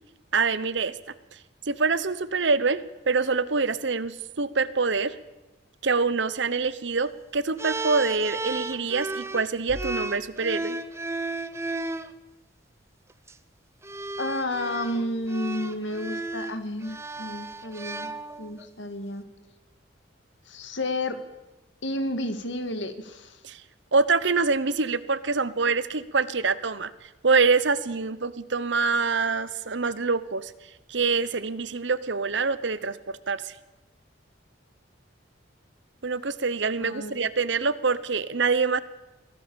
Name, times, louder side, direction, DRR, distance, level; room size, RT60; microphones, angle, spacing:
voice 1, 0.3-0.9 1.7-5.2 5.8-10.8 23.4-23.6 23.9-26.9 27.2-30.5 30.9-33.5 36.0-38.8, right 4 dB, 65° right, 16 dB, 1.0 m, -25 dB
sound 1, 7.6-12.1 13.1-13.3 13.8-18.7, right 2 dB, 15° right, 0.7 m, -34 dB
voice 2, 14.2-18.1 18.4-19.3 20.5-21.2 21.8-23.4 36.8-37.1, left 1 dB, 65° left, 9 dB, 2.0 m, -31 dB
23.5 x 17.0 x 7.0 m, 1.1 s
head